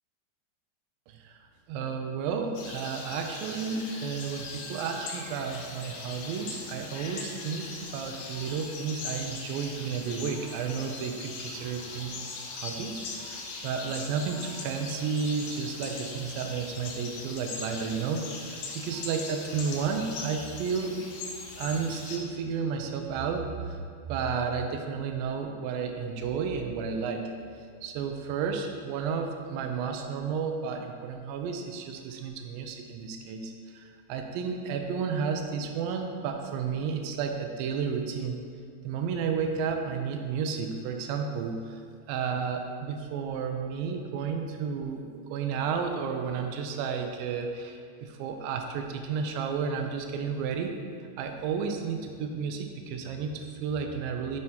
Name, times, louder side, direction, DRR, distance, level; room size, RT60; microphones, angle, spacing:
voice 1, 1.1-12.3 12.5-21.0 21.6-23.8 24.1-27.2 27.8-38.4 38.8-41.8 42.1-50.7 51.2-54.4, right 6 dB, 80° right, 4 dB, 2.3 m, -32 dB
sound 1, 2.5-22.2, left 4 dB, 70° left, 2.2 m, -40 dB
9.5 x 6.0 x 2.9 m, 2.2 s
omnidirectional pair, 4.3 m